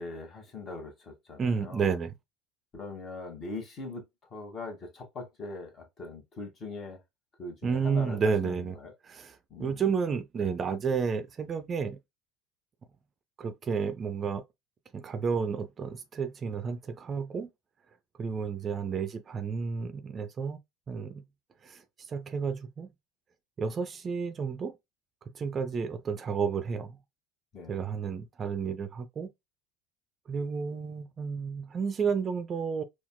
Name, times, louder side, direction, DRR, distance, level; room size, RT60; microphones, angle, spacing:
voice 1, 0.0-1.9 2.7-4.0 4.3-7.0 7.4-8.9 9.5-9.8 27.5-27.8, left 3 dB, 40° left, 1.3 m, -41 dB
voice 2, 1.4-2.1 7.6-8.7 9.0-12.0 13.4-14.4 14.9-17.5 18.2-20.6 20.9-21.2 21.6-21.8 22.1-22.9 23.6-24.7 25.3-27.0 27.7-29.3 30.3-32.8, right 6 dB, 35° right, 0.4 m, -31 dB
4.0 x 2.3 x 2.2 m
hypercardioid pair, 75°, 0 cm